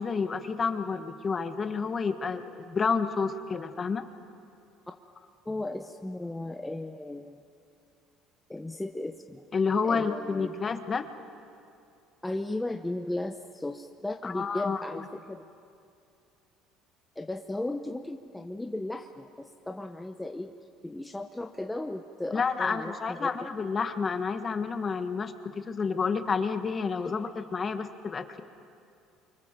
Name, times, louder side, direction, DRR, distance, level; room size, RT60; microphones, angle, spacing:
voice 1, 0.0-4.0 9.5-11.1 14.2-15.0 22.3-28.4, left 5 dB, 25° left, 9 dB, 1.4 m, -30 dB
voice 2, 5.4-7.4 8.5-9.4 9.9-10.5 12.2-15.4 17.2-20.5 20.8-23.5, left 2 dB, 5° left, 4 dB, 0.9 m, -36 dB
29.5 x 25.0 x 7.5 m, 2.6 s
cardioid pair, 130°, 0 cm